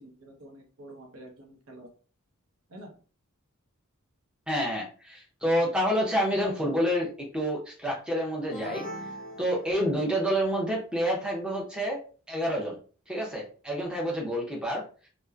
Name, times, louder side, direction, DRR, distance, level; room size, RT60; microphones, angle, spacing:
voice 1, 0.0-1.9 2.7-2.9, right 1 dB, 70° right, 2 dB, 0.7 m, -48 dB
voice 2, 4.5-8.8 9.4-12.0 12.3-12.8 13.1-15.1, equal, 5° right, -2 dB, 0.7 m, -28 dB
sound 1, 8.5-10.3, equal, 40° left, 0.5 m, -41 dB
2.8 x 2.1 x 2.3 m, 0.38 s
head